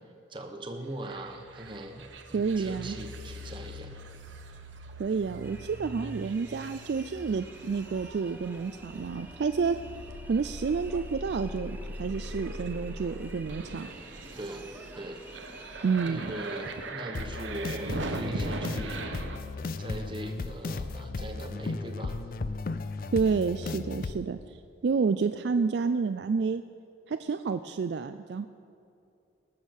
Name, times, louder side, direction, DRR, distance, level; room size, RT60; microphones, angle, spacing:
voice 1, 0.3-2.0 2.3-3.9 14.4-14.7 14.9-15.2 16.0-19.0 19.8-22.2, right 1 dB, 25° right, 4 dB, 1.0 m, -40 dB
sound 1, 1.0-19.4, right 1 dB, 80° right, 1.0 m, -41 dB
voice 2, 2.3-3.0 5.0-9.8 10.3-13.9 15.8-16.3 23.1-24.6 24.8-26.6 27.1-28.4, right 5 dB, 65° right, 10 dB, 0.4 m, -29 dB
sound 2, 5.4-16.9, right 1 dB, 10° right, 0.5 m, -50 dB
sound 3, 17.1-24.2, left 3 dB, 50° left, 0.4 m, -35 dB
19.5 x 7.3 x 6.4 m, 2.5 s
head